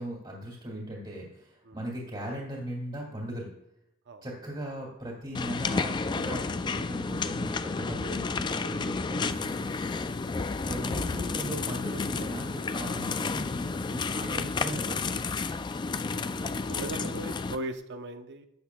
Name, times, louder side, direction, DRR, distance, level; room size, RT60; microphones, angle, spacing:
voice 1, 0.0-3.5 4.2-9.6 10.6-15.2, right 1 dB, 25° right, -3 dB, 2.0 m, -38 dB
sound 1, 5.3-17.6, left 4 dB, 20° left, 0.3 m, -31 dB
voice 2, 16.1-18.5, right 2 dB, 55° right, 8 dB, 0.7 m, -39 dB
12.0 x 7.8 x 2.3 m, 0.83 s
head